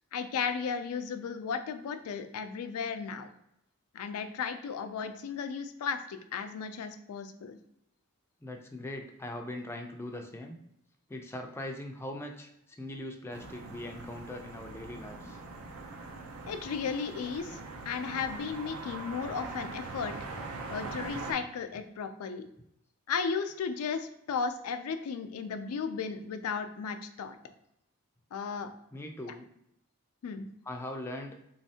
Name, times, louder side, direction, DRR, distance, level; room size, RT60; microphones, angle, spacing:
voice 1, 0.1-3.3 3.9-7.6 16.5-17.6 17.9-20.1 20.7-22.5 23.1-27.4 28.3-28.7 29.3-29.4 30.2-30.5, left 6 dB, 85° left, 8 dB, 0.4 m, -35 dB
voice 2, 8.4-10.6 11.1-15.4 28.9-29.5 30.6-31.4, left 1 dB, 10° left, 3 dB, 0.3 m, -41 dB
sound 1, 13.3-21.3, right 3 dB, 70° right, 0.5 m, -42 dB
3.5 x 3.1 x 2.7 m, 0.78 s
head